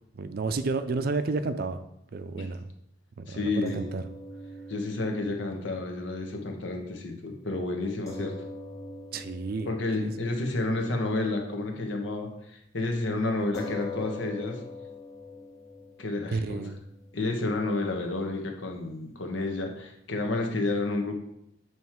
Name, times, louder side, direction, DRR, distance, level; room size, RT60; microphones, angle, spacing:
voice 1, 0.1-1.8 2.1-2.7 3.2-4.1 9.1-9.7 10.0-10.1 16.3-16.8, right 3 dB, 50° right, 10 dB, 0.4 m, -31 dB
voice 2, 3.3-3.9 4.7-8.3 9.7-14.6 16.0-16.6 17.1-21.1, left 2 dB, 75° left, 3 dB, 1.1 m, -30 dB
sound 1, 3.7-12.2 12.5-12.6 13.5-20.1, left 2 dB, 15° left, 1.3 m, -45 dB
7.4 x 3.1 x 4.5 m, 0.78 s
head